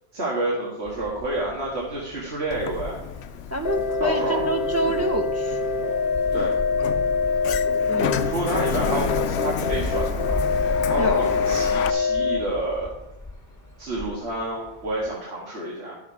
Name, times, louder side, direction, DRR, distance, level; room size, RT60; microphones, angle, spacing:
voice 1, 0.1-3.0 4.0-4.4 6.3-6.6 8.2-10.4 10.9-12.9 13.8-15.9, right 2 dB, 85° right, -4 dB, 2.0 m, -29 dB
sound 1, 0.9-15.2, left 2 dB, 15° left, 1.6 m, -37 dB
Sliding door, 2.5-11.9, left 8 dB, 90° left, 0.9 m, -31 dB
voice 2, 3.5-5.7 7.9-8.2 8.6-8.7 11.0-11.5, left 1 dB, 20° right, 3 dB, 0.6 m, -27 dB
sound 2, 3.6-12.4, left 4 dB, 55° left, 1.3 m, -25 dB
11.0 x 6.9 x 4.7 m, 0.87 s
omnidirectional pair, 1.1 m